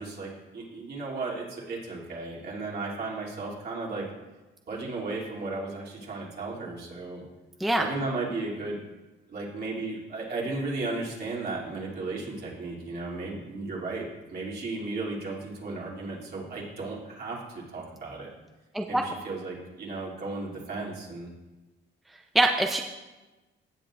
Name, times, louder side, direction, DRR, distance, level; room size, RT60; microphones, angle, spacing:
voice 1, 0.0-4.1 4.7-7.2 7.8-8.8 9.3-18.3 18.9-21.3, right 3 dB, 50° right, -4 dB, 2.9 m, -35 dB
voice 2, 22.3-22.8, right 1 dB, ahead, 3 dB, 0.6 m, -23 dB
17.0 x 7.2 x 2.5 m, 1.1 s
cardioid pair, 90°, 20 cm